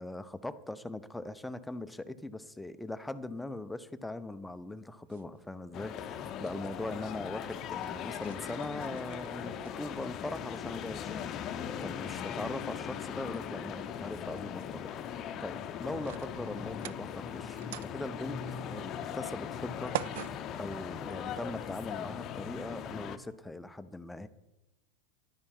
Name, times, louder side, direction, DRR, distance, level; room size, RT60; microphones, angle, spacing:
voice 1, 0.0-11.3 11.5-14.8 15.1-17.6 17.9-18.4 18.7-20.3 20.5-24.3, left 2 dB, 5° left, 13 dB, 0.7 m, -40 dB
sound 1, 4.5-21.5, right 14 dB, 60° right, 0.4 m, -48 dB
sound 2, 5.7-23.2, left 8 dB, 35° left, 0.8 m, -39 dB
11.5 x 9.8 x 5.6 m, 0.98 s
figure-of-eight pair, 90°, 0 cm